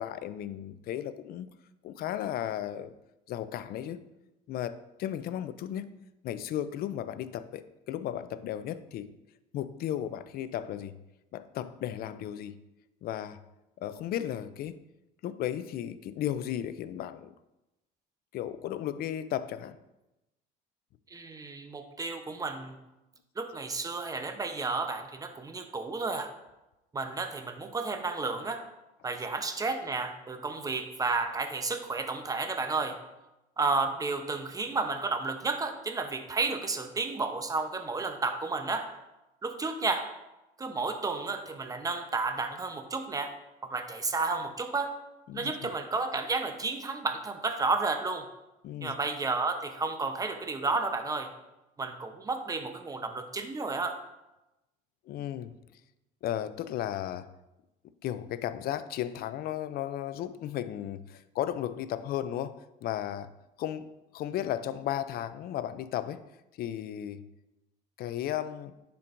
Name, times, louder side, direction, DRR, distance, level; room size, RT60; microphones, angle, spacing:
voice 1, 0.0-1.5 1.8-2.9 3.3-4.0 4.5-6.0 6.2-9.1 9.5-11.0 11.3-12.6 13.0-13.4 13.8-14.8 15.2-17.3 18.3-19.8 45.3-45.5 48.6-48.9 55.1-55.5 56.2-57.3 58.0-63.3 63.6-66.2 66.6-67.3 68.0-68.7, left 11 dB, 60° left, 14 dB, 0.4 m, -35 dB
voice 2, 21.1-22.8 23.4-26.3 26.9-28.7 29.0-33.0 33.6-39.0 39.4-40.1 40.6-43.3 43.6-44.9 45.3-48.3 48.8-51.3 51.8-54.0, right 3 dB, 20° right, 7 dB, 0.8 m, -32 dB
10.0 x 4.5 x 2.6 m, 0.98 s
supercardioid pair, 95°, 18 cm